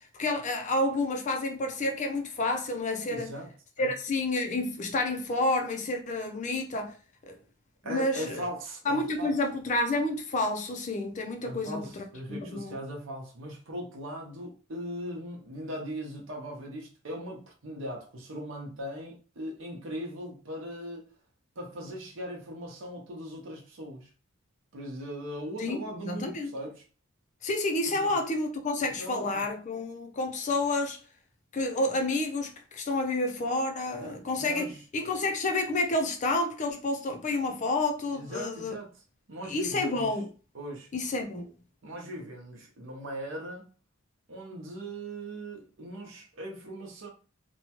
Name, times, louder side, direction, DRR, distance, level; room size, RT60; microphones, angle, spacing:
voice 1, 0.1-3.3 3.8-6.9 7.3-7.4 7.8-8.4 8.9-12.7 25.6-26.5 27.4-31.0 31.5-34.7 34.9-38.8 39.5-40.3 40.9-41.5, left 2 dB, 35° left, 0.4 m, -29 dB
voice 2, 3.1-3.5 3.8-3.9 7.8-9.4 11.4-21.0 21.6-24.1 24.7-26.8 27.9-28.1 29.0-29.4 33.9-34.8 38.1-39.0 39.3-40.2 40.5-40.9 41.8-43.7 44.3-47.1, equal, 60° right, 0.8 m, -39 dB
2.8 x 2.2 x 2.8 m
head